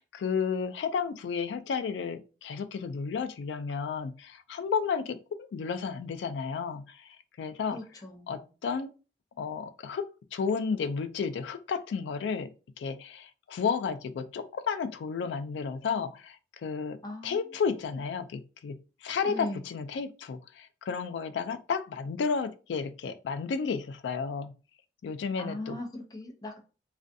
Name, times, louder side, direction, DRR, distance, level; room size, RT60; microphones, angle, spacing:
voice 1, 0.0-7.1 7.4-7.8 8.3-8.9 9.4-12.5 12.8-24.5 25.0-25.8, left 6 dB, 85° left, 0.3 m, -32 dB
voice 2, 7.7-8.4 17.0-17.4 19.2-19.6 25.4-26.6, left 1 dB, 20° left, 0.5 m, -38 dB
2.4 x 2.2 x 2.5 m
head